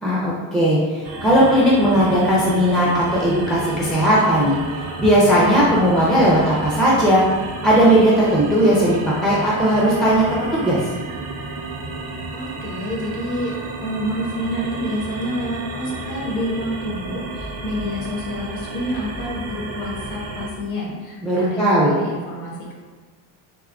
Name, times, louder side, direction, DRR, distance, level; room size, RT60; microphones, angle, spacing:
voice 1, 0.0-4.6 5.0-7.2 7.6-10.8 21.2-21.9, equal, ahead, -7 dB, 0.5 m, -17 dB
sound 1, 1.0-20.5, right 3 dB, 35° right, 0.6 m, -32 dB
voice 2, 12.3-22.7, equal, 45° left, -2 dB, 1.2 m, -28 dB
3.7 x 3.7 x 3.4 m, 1.5 s
cardioid pair, 165°, 42 cm